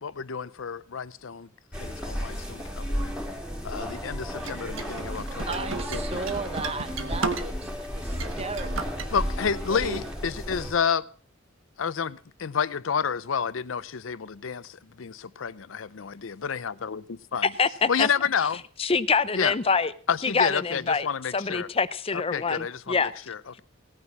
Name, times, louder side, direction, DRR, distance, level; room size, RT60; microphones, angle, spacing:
voice 1, 0.0-1.5 1.8-3.1 3.6-5.5 5.9-6.3 9.1-11.1 11.8-17.5 17.9-18.6 19.3-19.5 20.1-21.7 22.1-23.6, left 6 dB, 75° left, 0.6 m, -30 dB
sound 1, 1.7-10.7, equal, 5° right, 2.7 m, -33 dB
sound 2, 4.4-7.8 8.1-9.1, right 4 dB, 70° right, 1.3 m, -34 dB
voice 2, 5.5-9.0 9.7-10.0, right 3 dB, 30° right, 1.1 m, -35 dB
voice 3, 17.6-18.1 18.8-19.9 20.2-21.1 21.3-23.1, left 5 dB, 30° left, 0.6 m, -25 dB
18.0 x 9.6 x 5.9 m
head